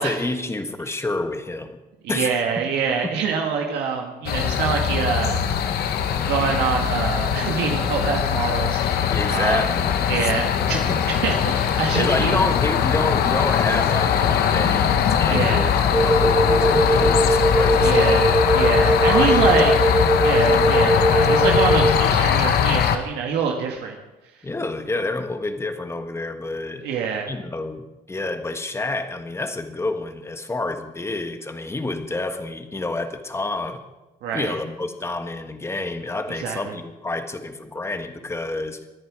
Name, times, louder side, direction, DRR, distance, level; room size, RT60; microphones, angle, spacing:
voice 1, 0.0-1.8 2.1-2.3 3.0-3.1 9.1-10.3 10.9-11.0 11.9-15.7 16.0-18.2 19.0-19.8 24.4-26.8 27.3-33.8 34.3-38.8, left 2 dB, 15° left, 7 dB, 1.6 m, -28 dB
voice 2, 2.0-5.4 6.3-9.6 10.1-10.8 11.1-12.4 15.3-15.7 17.8-19.7 20.2-24.0 26.8-27.3 34.2-34.5 36.4-36.7, right 6 dB, 80° right, 1 dB, 2.0 m, -25 dB
sound 1, 4.3-23.0, left 8 dB, 70° left, 1.3 m, -21 dB
sound 2, 15.9-22.0, right 1 dB, 10° right, 2.5 m, -20 dB
24.0 x 9.6 x 4.9 m, 1.1 s
cardioid pair, 110°, 17 cm